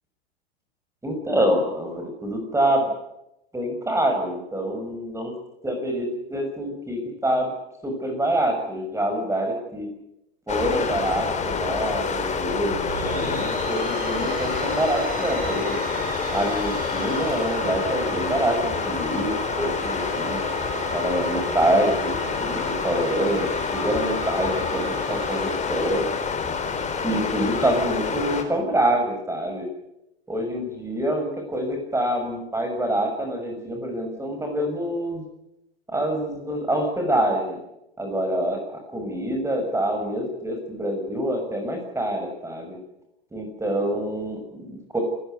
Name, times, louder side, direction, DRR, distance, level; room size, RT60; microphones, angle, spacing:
voice 1, 1.0-2.9 3.5-5.3 5.6-7.5 7.8-9.9 10.5-15.8 16.3-20.4 20.9-26.0 27.0-29.7 30.3-35.2 35.9-37.6 38.0-42.8 43.3-45.0, right 1 dB, 10° right, 4 dB, 6.5 m, -26 dB
sound 1, 10.5-28.4, left 5 dB, 20° left, 4.2 m, -28 dB
sound 2, 12.6-18.5, right 4 dB, 25° right, 5.9 m, -41 dB
sound 3, 12.7-27.1, right 3 dB, 75° right, 4.5 m, -36 dB
28.5 x 15.0 x 9.5 m, 0.86 s
hypercardioid pair, 95°, 32 cm